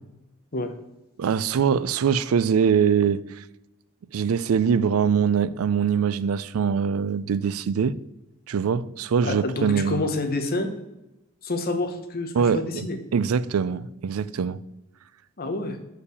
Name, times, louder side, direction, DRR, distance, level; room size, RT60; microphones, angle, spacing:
voice 1, 1.2-3.4 4.1-8.0 8.5-10.1 12.3-12.9 13.1-14.6, right 7 dB, 85° right, 0.4 m, -23 dB
voice 2, 9.2-10.7 11.4-13.0 15.4-15.8, left 2 dB, 45° left, 1.0 m, -28 dB
6.6 x 4.9 x 6.9 m
head